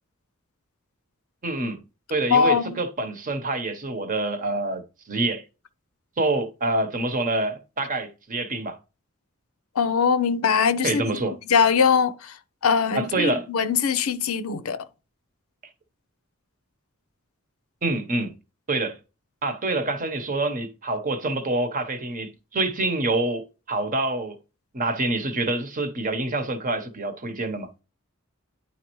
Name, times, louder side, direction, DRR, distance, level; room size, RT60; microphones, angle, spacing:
voice 1, 1.4-1.8 2.1-4.8 5.1-5.4 6.2-8.8 10.8-11.4 12.9-13.5 17.8-18.3 18.7-19.0 19.4-24.4 24.7-27.7, right 2 dB, 40° right, 0.9 m, -26 dB
voice 2, 2.3-2.8 9.8-11.0 11.5-12.4 12.6-14.8, left 6 dB, 90° left, 0.6 m, -21 dB
9.9 x 4.2 x 3.0 m
head